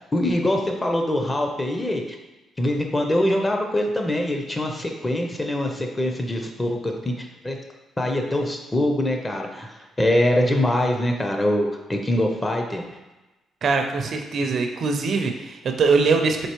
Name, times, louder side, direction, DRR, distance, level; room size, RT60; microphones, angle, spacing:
voice 1, 0.1-2.0 2.6-7.6 8.0-12.8, left 1 dB, 20° left, 2 dB, 0.6 m, -23 dB
voice 2, 13.6-16.5, right 4 dB, 55° right, 5 dB, 0.4 m, -22 dB
4.4 x 2.8 x 3.0 m, 1.1 s
cardioid pair, 90°, 0 cm